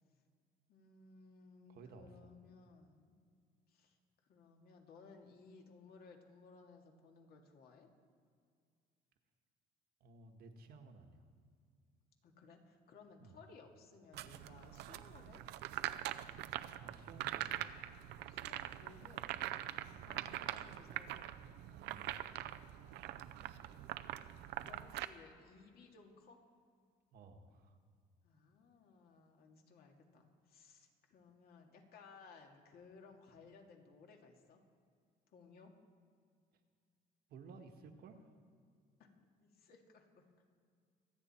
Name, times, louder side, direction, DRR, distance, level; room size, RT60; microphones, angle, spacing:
voice 1, 0.7-3.2 3.7-4.0 4.2-7.9 12.2-15.4 18.3-19.3 20.0-21.3 22.9-24.1 24.6-26.4 28.2-34.6 35.3-35.7 39.0-40.3, left 4 dB, 65° left, 2 dB, 2.3 m, -60 dB
voice 2, 1.7-2.3 10.0-11.3 13.2-13.3 16.8-17.6 19.9-20.1 21.8-22.1 27.1-27.8 37.3-38.3, right 4 dB, 65° right, 5 dB, 1.4 m, -56 dB
sound 1, 14.1-25.1, right 14 dB, 80° right, 0.6 m, -43 dB
24.5 x 8.8 x 4.4 m, 2.2 s
cardioid pair, 110°, 17 cm